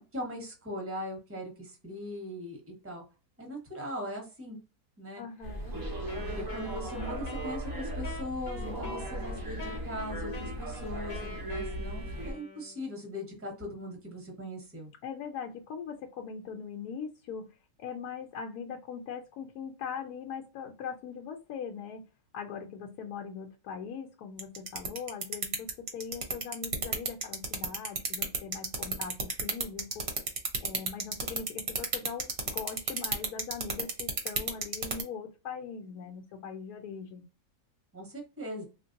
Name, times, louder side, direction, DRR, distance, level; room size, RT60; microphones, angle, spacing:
voice 1, 0.0-3.0 3.4-4.6 5.0-5.2 5.7-5.8 6.3-14.9 37.9-38.6, left 1 dB, 10° right, 1 dB, 0.9 m, -40 dB
voice 2, 5.2-5.7 15.0-17.5 17.8-22.1 22.3-30.1 30.6-37.3, left 6 dB, 75° left, 2 dB, 1.0 m, -41 dB
sound 1, 5.4-12.3, right 1 dB, 30° right, 0.4 m, -37 dB
Wind instrument woodwind instrument, 6.1-12.9, left 1 dB, 40° left, 0.8 m, -45 dB
sound 2, 24.4-35.0, right 4 dB, 50° right, 0.8 m, -30 dB
3.4 x 2.5 x 2.6 m, 0.31 s
omnidirectional pair, 1.7 m